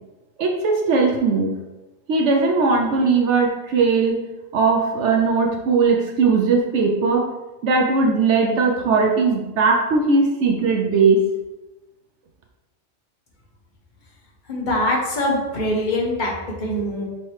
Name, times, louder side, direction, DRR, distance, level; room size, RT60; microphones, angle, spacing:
voice 1, 0.4-1.6 2.1-4.2 4.5-7.3 7.6-11.2, right 4 dB, 70° right, 1 dB, 0.8 m, -19 dB
voice 2, 14.5-16.3 16.6-17.1, left 1 dB, 40° left, -2 dB, 1.0 m, -23 dB
5.5 x 2.9 x 3.2 m, 1.1 s
omnidirectional pair, 1.4 m